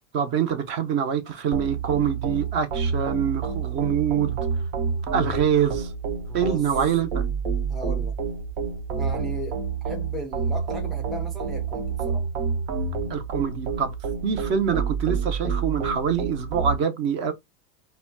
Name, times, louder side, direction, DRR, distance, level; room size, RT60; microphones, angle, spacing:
voice 1, 0.1-4.5 5.1-5.9 6.3-7.3 13.1-13.9 14.2-17.3, right 8 dB, 40° right, 0.7 m, -25 dB
sound 1, 1.5-16.8, right 5 dB, 85° right, 1.0 m, -28 dB
voice 2, 6.3-6.6 7.7-8.1 9.0-9.6 9.8-12.3, left 1 dB, ahead, 0.4 m, -36 dB
4.0 x 2.2 x 2.2 m
supercardioid pair, 160°, 29 cm